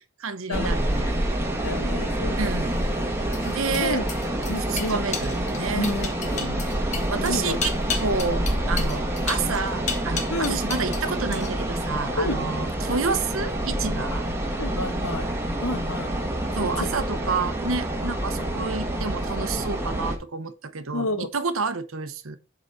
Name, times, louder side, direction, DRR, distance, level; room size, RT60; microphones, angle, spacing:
voice 1, 0.2-1.1 2.4-2.7 3.5-4.0 4.6-5.9 7.1-7.7 8.0-14.2 16.5-21.1 21.3-22.4, right 4 dB, 70° right, 1.0 m, -29 dB
sound 1, 0.5-20.2, right 1 dB, 10° right, 1.3 m, -27 dB
voice 2, 1.6-2.8 3.4-4.0 4.5-5.2 5.7-6.6 7.1-7.6 10.3-10.6 12.1-12.5 14.6-15.3 15.6-16.1 16.8-17.0 20.9-21.3, left 2 dB, 80° left, 1.3 m, -30 dB
sound 2, 2.5-11.0 11.3-11.8, left 6 dB, 35° left, 1.2 m, -34 dB
8.0 x 4.1 x 5.5 m
head